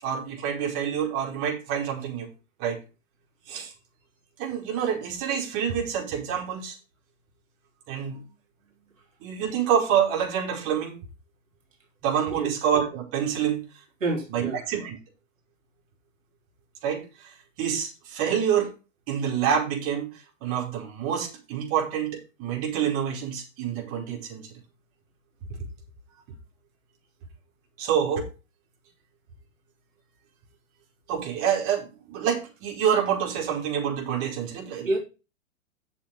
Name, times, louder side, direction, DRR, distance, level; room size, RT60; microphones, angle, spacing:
voice 1, 0.0-2.3 2.6-2.8 3.5-3.7 4.4-6.8 7.9-8.2 9.2-11.0 12.0-13.6 14.3-15.0 16.8-18.7 19.1-24.5 27.8-28.3 31.1-35.0, right 8 dB, 35° right, 5.0 m, -27 dB
voice 2, 14.0-14.6 34.8-35.0, right 2 dB, 70° right, 3.6 m, -27 dB
8.7 x 7.1 x 5.4 m
figure-of-eight pair, 110°, 40 cm